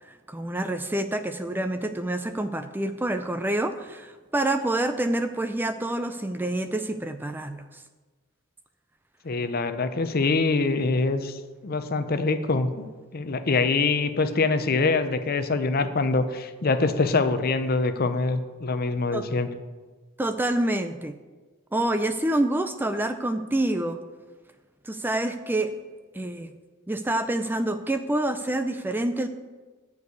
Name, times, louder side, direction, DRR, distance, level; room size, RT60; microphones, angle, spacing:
voice 1, 0.0-7.8 19.1-19.3 20.2-21.1 21.7-24.0 24.8-25.8 26.1-26.5 26.9-29.3, right 1 dB, 10° right, 9 dB, 0.4 m, -27 dB
voice 2, 9.2-12.8 13.1-19.5, left 3 dB, 45° left, 10 dB, 0.7 m, -24 dB
11.0 x 4.7 x 8.2 m, 1.3 s
head